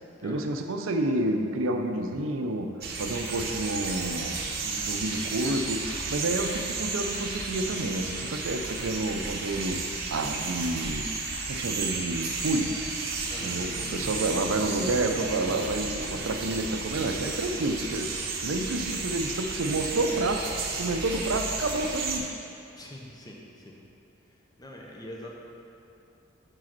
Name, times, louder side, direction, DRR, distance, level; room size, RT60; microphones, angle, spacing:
voice 1, 0.2-9.8 10.1-11.2 11.5-12.8 13.4-20.4 20.8-22.3, right 2 dB, 75° right, 5 dB, 0.6 m, -29 dB
sound 1, 2.8-22.2, right 3 dB, 50° right, 0.8 m, -33 dB
sound 2, 12.7-17.7, left 1 dB, 70° left, 0.5 m, -44 dB
voice 2, 22.8-23.8 24.6-25.3, left 1 dB, 20° left, -1 dB, 0.8 m, -43 dB
6.3 x 4.9 x 6.0 m, 2.8 s
head